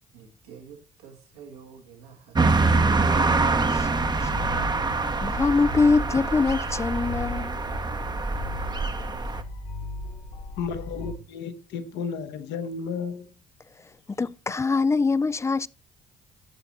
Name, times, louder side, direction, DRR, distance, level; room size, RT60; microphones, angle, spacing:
voice 1, 0.1-2.7, right 7 dB, 75° right, 1.5 m, -48 dB
sound 1, 2.4-9.4, right 3 dB, 20° right, 0.8 m, -25 dB
sound 2, 3.9-11.1, left 2 dB, 80° left, 2.8 m, -37 dB
voice 2, 5.2-7.6 14.2-15.7, left 4 dB, 15° left, 0.3 m, -23 dB
voice 3, 10.6-13.3, left 6 dB, 60° left, 1.0 m, -33 dB
11.0 x 6.9 x 2.9 m
figure-of-eight pair, 45°, 20 cm